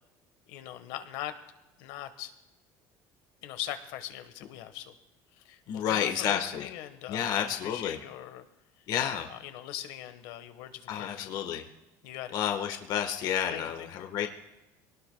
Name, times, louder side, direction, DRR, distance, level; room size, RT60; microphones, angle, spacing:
voice 1, 0.5-1.4 1.8-2.3 3.4-4.9 5.4-8.4 9.3-11.3 12.0-12.4 13.5-13.9, left 12 dB, 80° left, 9 dB, 1.3 m, -41 dB
voice 2, 5.7-6.7 7.1-8.0 8.9-9.3 10.9-11.6 12.3-14.3, left 9 dB, 60° left, 5 dB, 1.3 m, -30 dB
23.0 x 18.5 x 2.3 m, 0.99 s
cardioid pair, 130°, 8 cm